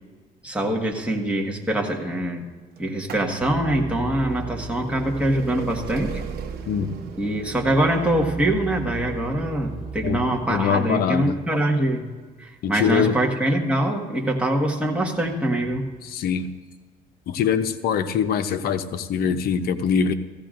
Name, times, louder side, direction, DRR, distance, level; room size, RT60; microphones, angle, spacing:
voice 1, 0.4-2.5 2.8-6.2 7.2-12.1 12.4-15.9, right 1 dB, 5° right, 0 dB, 1.5 m, -24 dB
sound 1, 2.8-14.4 15.2-15.3 16.3-16.4 16.6-16.7, right 6 dB, 65° right, 0.9 m, -41 dB
sound 2, 3.4-10.6, right 5 dB, 40° right, 4.1 m, -36 dB
voice 2, 10.0-11.3 12.6-13.2 16.0-16.5 17.3-20.1, left 7 dB, 65° left, 10 dB, 0.7 m, -23 dB
16.0 x 15.5 x 2.5 m, 1.4 s
cardioid pair, 110°, 17 cm